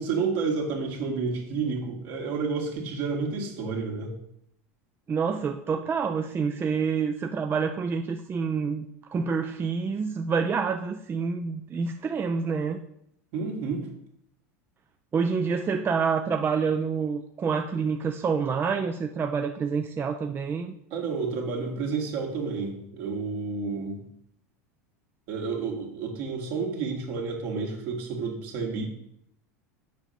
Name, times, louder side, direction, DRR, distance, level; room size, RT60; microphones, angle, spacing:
voice 1, 0.0-4.1 13.3-13.8 20.9-24.0 25.3-28.9, right 4 dB, 60° right, 1 dB, 2.1 m, -30 dB
voice 2, 5.1-12.8 15.1-20.8, right 5 dB, 25° right, 6 dB, 0.5 m, -27 dB
7.4 x 5.1 x 5.9 m, 0.74 s
hypercardioid pair, 90°, 8 cm